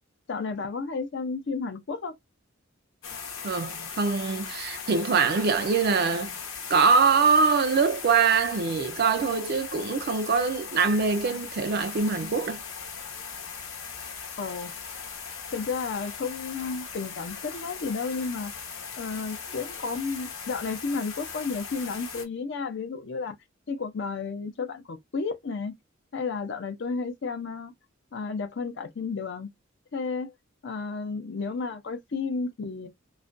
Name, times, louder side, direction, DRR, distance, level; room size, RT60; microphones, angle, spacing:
voice 1, 0.3-2.2 14.4-14.7 15.5-18.5 19.0-23.3 23.7-25.8 26.1-27.7 28.1-29.5 29.9-30.3 30.6-32.9, left 4 dB, 60° left, 0.5 m, -32 dB
sound 1, 3.0-22.3, left 6 dB, 85° left, 0.9 m, -39 dB
voice 2, 3.4-6.4 6.7-12.6, right 5 dB, 50° right, 0.4 m, -23 dB
2.3 x 2.1 x 2.4 m
head